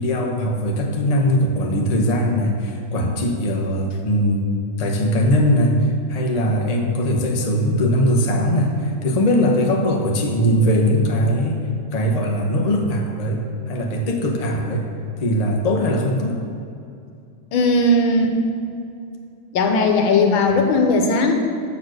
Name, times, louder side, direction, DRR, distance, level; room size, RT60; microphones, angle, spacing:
voice 1, 0.0-4.4 4.8-11.7 11.9-14.9 15.2-16.4, equal, 90° left, 1 dB, 0.3 m, -20 dB
voice 2, 17.5-18.3 19.5-21.3, left 2 dB, 70° left, 3 dB, 1.6 m, -17 dB
7.0 x 6.4 x 6.4 m, 2.6 s
omnidirectional pair, 2.3 m